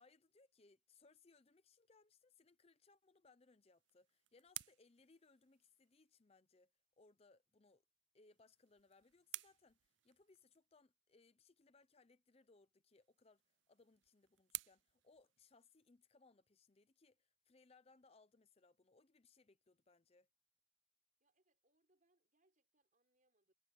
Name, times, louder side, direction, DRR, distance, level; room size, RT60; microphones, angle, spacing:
voice 1, 0.0-6.7 7.0-7.8 8.1-20.3, left 3 dB, 30° left, 0.6 m, -70 dB
sound 1, 3.6-6.1 8.2-10.7 12.9-16.0, right 18 dB, 60° right, 0.4 m, -55 dB
voice 2, 21.2-23.5, right 2 dB, 40° right, 5.2 m, -82 dB
head